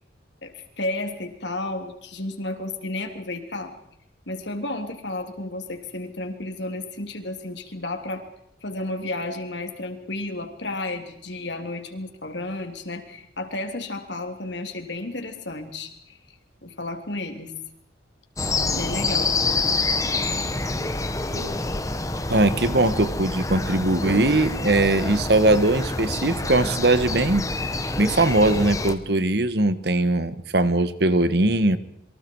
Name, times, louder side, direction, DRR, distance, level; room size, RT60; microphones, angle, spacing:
voice 1, 0.4-3.7 4.3-8.3 8.6-16.2 16.6-17.5 18.7-19.4, left 2 dB, 70° left, 5 dB, 3.3 m, -32 dB
sound 1, 18.4-28.9, left 3 dB, 15° left, 1.2 m, -27 dB
sound 2, 21.3-22.2 23.0-23.5 24.1-24.9 25.4-26.0 26.3-27.1 27.4-27.8 28.2-28.8, equal, 90° right, 3.7 m, -39 dB
voice 2, 22.3-27.5 28.0-31.8, right 2 dB, 60° right, 13 dB, 1.3 m, -20 dB
27.5 x 24.0 x 4.7 m, 0.74 s
head